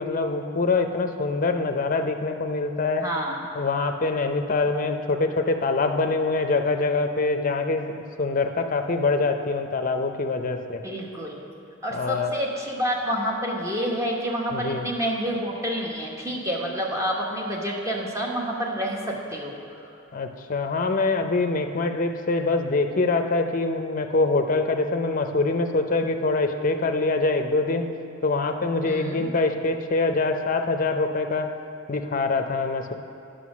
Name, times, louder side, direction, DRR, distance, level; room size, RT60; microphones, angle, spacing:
voice 1, 0.0-3.0 3.6-10.8 11.9-12.3 14.5-14.9 20.1-27.9 28.2-31.5 31.9-32.9, left 3 dB, 40° left, 6 dB, 0.6 m, -24 dB
voice 2, 3.0-3.4 10.8-11.4 11.8-19.6 28.8-29.3, equal, 15° right, -2 dB, 1.1 m, -28 dB
9.4 x 6.3 x 6.1 m, 2.6 s
head